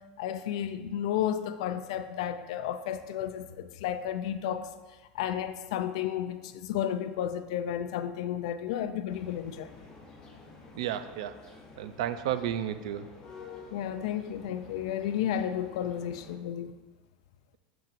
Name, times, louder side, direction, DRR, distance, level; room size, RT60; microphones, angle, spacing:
voice 1, 0.2-4.7 5.1-9.7 13.7-16.7, left 10 dB, 75° left, 10 dB, 0.4 m, -32 dB
sound 1, 9.1-16.4, left 4 dB, 25° left, 0.8 m, -51 dB
voice 2, 10.7-11.4 11.8-13.1, right 10 dB, 80° right, 11 dB, 0.4 m, -32 dB
7.1 x 5.7 x 2.5 m, 1.2 s
supercardioid pair, 165°, 3 cm